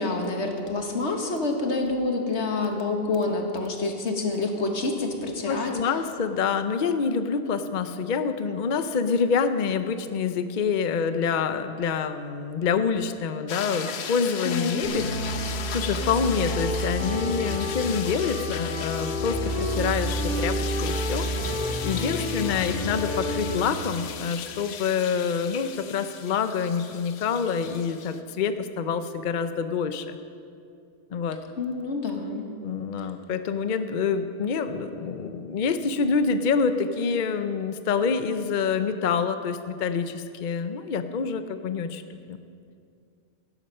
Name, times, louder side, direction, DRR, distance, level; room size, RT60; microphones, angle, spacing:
voice 1, 0.0-5.7 14.4-14.8 31.6-32.5 33.0-33.1, left 3 dB, 90° left, 3 dB, 1.7 m, -27 dB
voice 2, 5.4-21.3 21.8-30.1 31.1-31.4 32.6-42.4, left 6 dB, 50° left, 10 dB, 0.7 m, -27 dB
sound 1, 13.5-28.2, left 7 dB, 70° left, 1.0 m, -37 dB
sound 2, 14.8-23.6, equal, 80° right, 4.1 m, -29 dB
16.0 x 12.0 x 5.5 m, 2.4 s
omnidirectional pair, 1.1 m